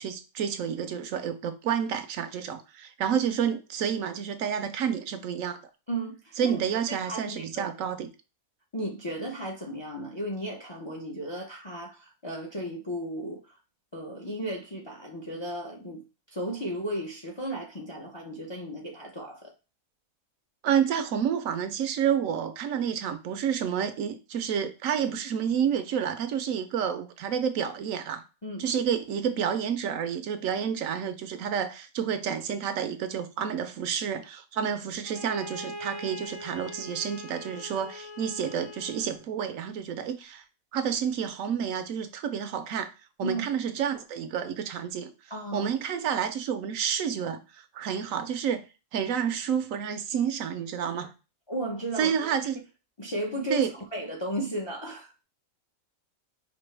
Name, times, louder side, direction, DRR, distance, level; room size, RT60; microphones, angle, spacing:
voice 1, 0.0-5.6 6.4-8.1 20.6-28.2 28.6-40.4 40.7-42.9 43.2-45.1 45.5-48.6 48.9-51.1 52.0-52.6 53.5-53.7, right 8 dB, 75° right, 0.9 m, -29 dB
voice 2, 5.9-7.7 8.7-13.5 13.9-16.0 16.3-19.5 28.4-28.7 43.2-43.5 45.3-45.7 51.5-52.3 53.0-55.1, right 1 dB, 35° left, 0.4 m, -35 dB
Bowed string instrument, 35.0-39.2, left 1 dB, 65° left, 1.2 m, -42 dB
5.2 x 2.8 x 3.2 m
omnidirectional pair, 1.5 m